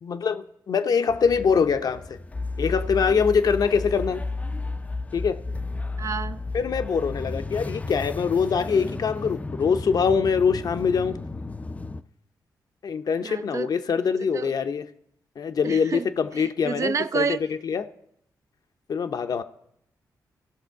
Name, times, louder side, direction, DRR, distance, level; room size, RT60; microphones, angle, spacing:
voice 1, 0.0-2.2 2.6-4.2 5.1-5.4 6.5-11.2 12.8-14.8 15.4-17.9 18.9-19.4, left 6 dB, 60° left, 0.6 m, -24 dB
sound 1, 1.1-12.0, left 3 dB, 20° left, 0.4 m, -33 dB
voice 2, 6.0-6.4 13.2-13.7 14.3-14.5 15.6-16.0 16.4-17.4, right 5 dB, 45° right, 0.4 m, -29 dB
16.0 x 6.2 x 4.6 m
cardioid pair, 75°, 7 cm